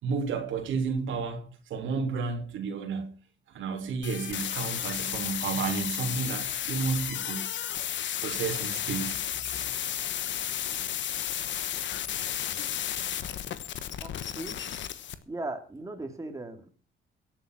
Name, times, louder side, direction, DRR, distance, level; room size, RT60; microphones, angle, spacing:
voice 1, 0.0-3.1 3.5-7.5 8.2-9.2 12.6-12.7, right 5 dB, 80° right, 3.2 m, -32 dB
sound 1, 4.0-15.1, left 10 dB, 70° left, 1.2 m, -33 dB
voice 2, 14.0-14.6 15.3-16.7, right 2 dB, 15° right, 2.6 m, -38 dB
16.5 x 7.9 x 6.2 m
cardioid pair, 90°, 20 cm